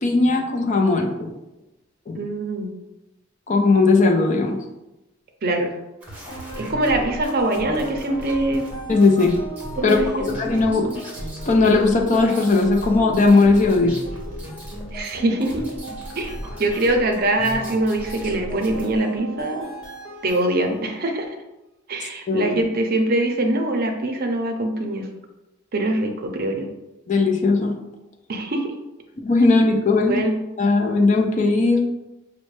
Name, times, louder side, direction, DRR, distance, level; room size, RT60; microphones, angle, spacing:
voice 1, 0.0-1.3 2.1-2.2 3.5-4.6 8.9-9.3 9.8-11.0 11.4-14.0 22.3-22.5 27.1-27.7 29.2-30.2 30.6-31.8, left 3 dB, 35° left, 2 dB, 0.5 m, -18 dB
voice 2, 2.1-2.7 5.4-5.8 6.6-8.7 9.8-10.3 14.9-15.6 16.1-16.3 16.6-19.7 20.2-21.3 21.9-25.1 25.7-26.7 28.3-28.7 30.0-30.4, right 1 dB, 50° right, 4 dB, 0.5 m, -23 dB
sound 1, 6.0-19.0, equal, 5° right, 0.8 m, -37 dB
sound 2, 6.3-21.0, right 2 dB, 20° left, 0.9 m, -37 dB
5.1 x 2.2 x 3.1 m, 0.97 s
head